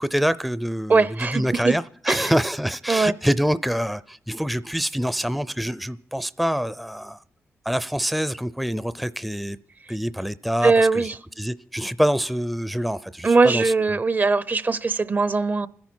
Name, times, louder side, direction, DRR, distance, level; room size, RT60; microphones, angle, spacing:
voice 1, 0.0-1.1 1.3-7.2 7.7-9.6 9.9-11.1 11.4-14.0, equal, ahead, 0.5 m, -25 dB
voice 2, 0.9-1.7 2.1-2.3 2.9-3.1 10.6-11.2 13.2-15.7, right 3 dB, 40° right, 0.7 m, -20 dB
26.0 x 10.5 x 4.4 m
cardioid pair, 65°, 5 cm